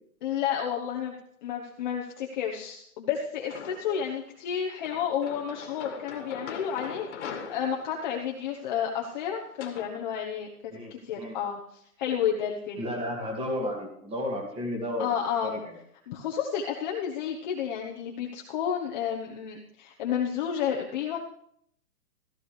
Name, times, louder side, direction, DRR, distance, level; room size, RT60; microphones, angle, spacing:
voice 1, 0.2-11.6 12.0-12.8 15.0-15.6 16.1-21.2, left 8 dB, 30° left, 0 dB, 1.1 m, -31 dB
sound 1, 3.5-4.1 4.8-9.9, left 6 dB, 45° left, 1.9 m, -42 dB
voice 2, 10.7-11.4 12.8-15.1 15.4-15.8, left 1 dB, 10° right, 1 dB, 2.1 m, -33 dB
15.0 x 14.0 x 3.3 m, 0.69 s
hypercardioid pair, 155°, 46 cm